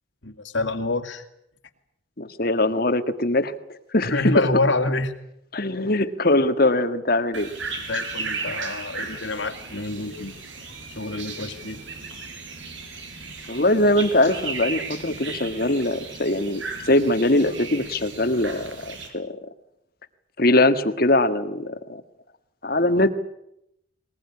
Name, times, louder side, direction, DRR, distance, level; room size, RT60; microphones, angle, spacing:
voice 1, 0.2-1.3 4.0-5.1 7.9-10.3 10.9-11.8, left 2 dB, 65° left, 8 dB, 2.4 m, -26 dB
voice 2, 2.2-3.5 3.9-4.3 5.5-7.5 13.5-19.4 20.4-22.0 22.6-23.2, left 1 dB, 45° left, 10 dB, 1.6 m, -22 dB
sound 1, 7.3-19.1, right 4 dB, 70° right, 5.2 m, -35 dB
22.0 x 20.5 x 9.7 m, 0.80 s
head